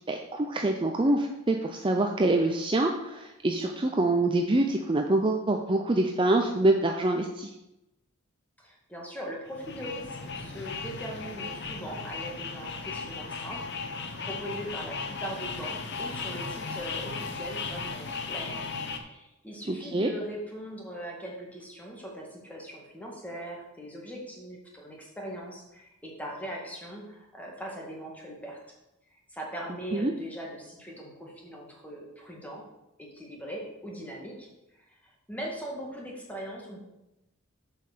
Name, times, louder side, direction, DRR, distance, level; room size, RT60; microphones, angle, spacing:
voice 1, 0.1-7.5 19.7-20.1 29.9-30.1, right 2 dB, 25° right, 3 dB, 0.5 m, -25 dB
voice 2, 8.6-18.7 18.9-28.6 29.3-32.6 33.0-34.5 34.8-36.8, equal, 5° left, -2 dB, 2.0 m, -40 dB
sound 1, 9.5-19.0, left 4 dB, 55° left, 0.9 m, -36 dB
7.4 x 5.6 x 6.7 m, 0.93 s
head